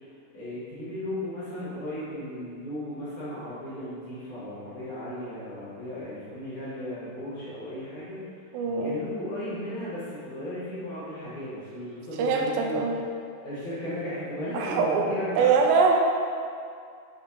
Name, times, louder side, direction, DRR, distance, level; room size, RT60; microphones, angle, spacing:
voice 1, 0.3-8.3 8.6-12.8 13.4-15.6, left 1 dB, 60° left, -11 dB, 2.3 m, -35 dB
voice 2, 8.5-8.9 12.2-13.0 14.5-15.1 15.4-16.0, right 5 dB, 85° right, 1 dB, 2.8 m, -23 dB
8.2 x 3.5 x 4.1 m, 2.3 s
omnidirectional pair, 4.9 m